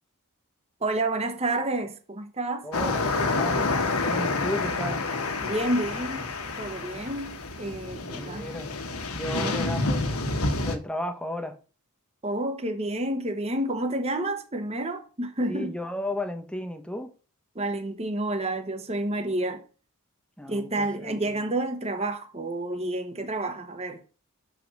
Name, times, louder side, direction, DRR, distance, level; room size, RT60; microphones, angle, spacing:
voice 1, 0.8-2.7 5.4-6.3 6.6-8.5 9.3-9.6 12.2-15.8 17.5-19.6 20.5-24.0, right 1 dB, 30° right, 0.9 m, -29 dB
voice 2, 2.6-5.1 8.0-8.7 9.1-11.6 15.5-17.1 20.4-21.4, left 1 dB, 5° left, 0.9 m, -34 dB
sound 1, 2.7-10.8, left 3 dB, 75° left, 1.3 m, -28 dB
6.6 x 5.0 x 6.4 m
head